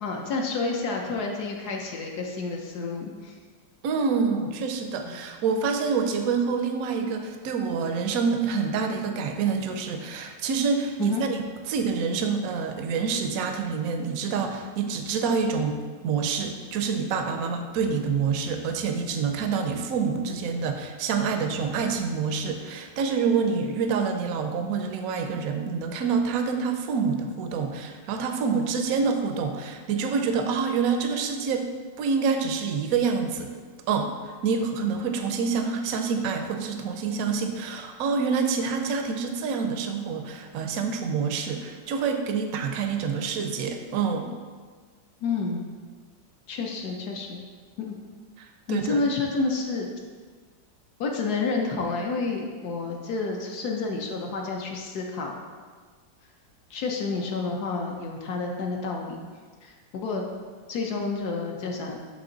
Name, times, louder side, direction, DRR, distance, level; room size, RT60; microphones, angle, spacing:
voice 1, 0.0-3.4 5.0-5.1 11.0-11.2 17.4-17.5 45.2-45.7 46.5-47.4 47.8-47.9 48.7-49.9 51.0-55.4 56.7-59.2 59.6-60.2 60.7-62.0, left 4 dB, 65° left, 1 dB, 1.1 m, -29 dB
voice 2, 3.8-11.3 11.7-31.7 32.0-33.5 33.9-34.1 34.4-44.3 48.4-49.0, right 5 dB, 70° right, 5 dB, 0.9 m, -27 dB
8.5 x 3.6 x 3.9 m, 1.5 s
omnidirectional pair, 2.0 m